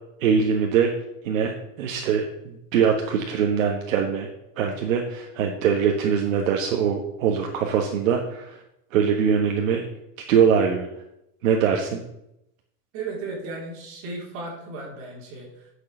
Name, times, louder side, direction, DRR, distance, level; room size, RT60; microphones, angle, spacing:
voice 1, 0.2-0.9 1.2-4.3 4.6-8.6 8.9-9.9 10.3-10.9 11.4-12.0, right 7 dB, 60° right, 2 dB, 1.4 m, -22 dB
voice 2, 12.9-15.7, right 3 dB, 30° right, -3 dB, 3.5 m, -35 dB
9.4 x 6.7 x 6.4 m, 0.83 s
supercardioid pair, 170°, 46 cm